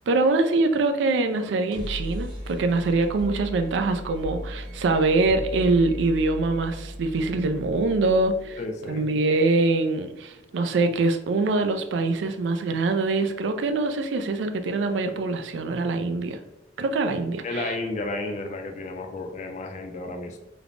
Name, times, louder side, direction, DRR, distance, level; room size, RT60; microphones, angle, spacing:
voice 1, 0.1-8.6 8.9-16.4 16.8-17.7, right 3 dB, 80° right, 7 dB, 0.3 m, -24 dB
sound 1, 1.4-15.3, equal, 30° right, 0.6 m, -39 dB
voice 2, 8.6-9.1 17.4-20.4, left 2 dB, 40° left, 4 dB, 0.4 m, -32 dB
3.2 x 2.1 x 2.4 m, 0.91 s
head